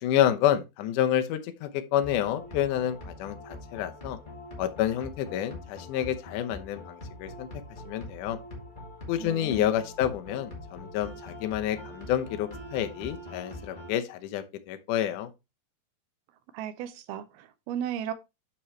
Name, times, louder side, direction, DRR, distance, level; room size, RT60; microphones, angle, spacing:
voice 1, 0.0-4.2 4.6-7.5 7.9-8.4 9.1-15.3, left 11 dB, 75° left, 1.9 m, -29 dB
sound 1, 2.0-13.9, left 1 dB, 15° left, 1.7 m, -43 dB
voice 2, 9.2-9.7 16.5-18.1, right 9 dB, 80° right, 2.6 m, -35 dB
8.7 x 6.1 x 3.2 m
omnidirectional pair, 4.7 m